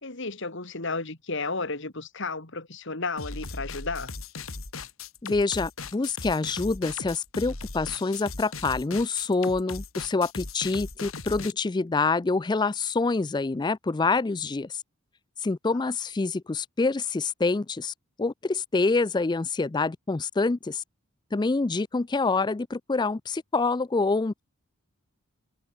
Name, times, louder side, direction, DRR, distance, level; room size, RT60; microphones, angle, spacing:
voice 1, 0.0-4.1, left 3 dB, 60° left, 2.9 m, -33 dB
sound 1, 3.2-11.5, left 3 dB, 75° left, 2.8 m, -38 dB
voice 2, 5.2-14.8 15.4-20.8 21.3-24.4, left 3 dB, 20° left, 0.4 m, -26 dB
head